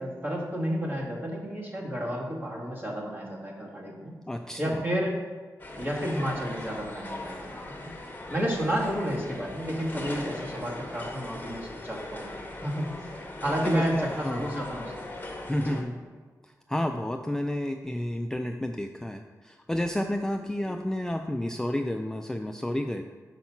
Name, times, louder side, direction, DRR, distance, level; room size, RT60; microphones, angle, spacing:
voice 1, 0.0-4.1 4.6-5.2 5.7-7.9 8.3-12.3 12.6-13.1 13.4-14.9 15.7-15.8 20.7-20.8, equal, 30° right, -3 dB, 1.8 m, -31 dB
voice 2, 4.3-4.8 13.6-14.5 15.4-16.0 16.4-23.1, left 1 dB, 10° left, 5 dB, 0.3 m, -31 dB
sound 1, 5.6-15.8, left 2 dB, 30° left, 1.3 m, -39 dB
5.9 x 5.2 x 5.8 m, 1.4 s
wide cardioid pair, 95°, 7 cm